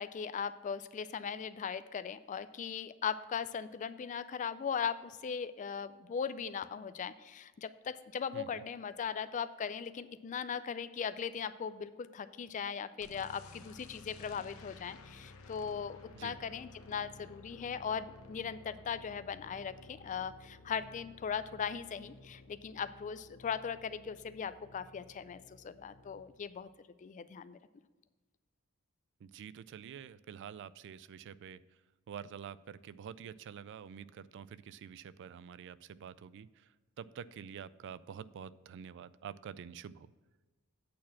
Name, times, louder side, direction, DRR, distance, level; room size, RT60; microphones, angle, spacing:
voice 1, 0.0-26.7 27.0-27.6, left 7 dB, 35° left, 14 dB, 0.3 m, -39 dB
sound 1, 13.0-26.3, left 2 dB, 70° left, 0.8 m, -55 dB
voice 2, 29.2-31.6 32.1-36.7 37.0-40.1, right 8 dB, 55° right, 17 dB, 0.3 m, -47 dB
8.5 x 4.2 x 7.2 m, 1.3 s
head